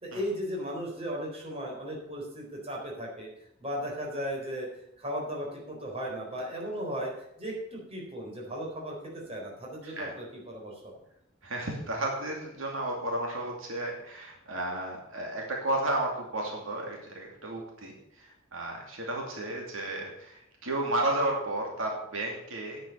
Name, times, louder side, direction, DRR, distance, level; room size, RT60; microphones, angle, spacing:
voice 1, 0.0-3.3 3.6-4.7 5.0-7.1 7.4-10.9, equal, 30° right, -2 dB, 4.1 m, -36 dB
voice 2, 11.4-17.9 18.2-22.8, right 1 dB, 80° right, 0 dB, 2.6 m, -33 dB
10.5 x 8.0 x 6.9 m, 0.79 s
head